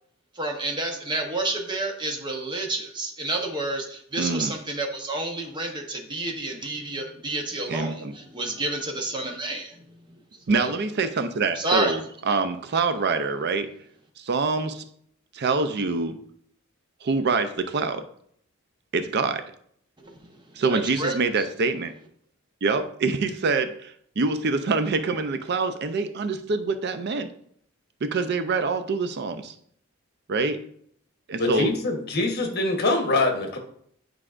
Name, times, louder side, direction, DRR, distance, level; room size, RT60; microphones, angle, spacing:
voice 1, 0.4-9.7 10.5-10.7 11.6-12.0 20.6-21.1, right 2 dB, 20° right, 2 dB, 0.9 m, -29 dB
voice 2, 4.2-4.5 7.7-8.1 10.5-13.7 14.2-14.8 15.3-16.2 17.0-18.1 18.9-19.5 20.6-21.9 22.6-27.3 28.0-29.5 30.3-30.6 31.3-31.7, right 4 dB, 55° right, 9 dB, 0.5 m, -25 dB
voice 3, 31.4-33.6, left 2 dB, 50° left, 3 dB, 1.2 m, -24 dB
9.8 x 4.7 x 2.5 m, 0.65 s
head